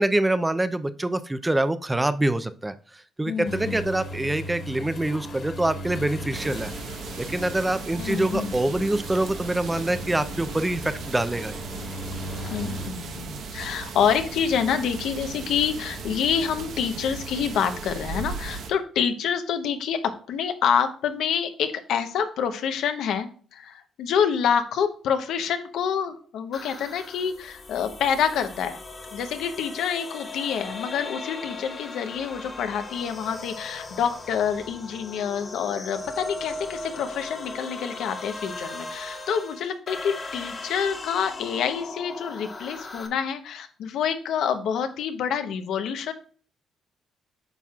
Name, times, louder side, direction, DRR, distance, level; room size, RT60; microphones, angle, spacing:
voice 1, 0.0-6.7 7.2-11.6, right 1 dB, 15° right, 12 dB, 0.5 m, -25 dB
voice 2, 3.2-3.7 8.0-8.5 12.5-28.8 29.1-46.1, left 7 dB, 80° left, 8 dB, 0.9 m, -27 dB
sound 1, 3.4-12.9, equal, 55° left, 2.0 m, -37 dB
sound 2, 6.3-18.7, right 4 dB, 75° right, 1.1 m, -37 dB
sound 3, 26.5-43.1, left 2 dB, 35° left, 1.4 m, -38 dB
9.1 x 5.7 x 2.4 m, 0.43 s
cardioid pair, 90°, 0 cm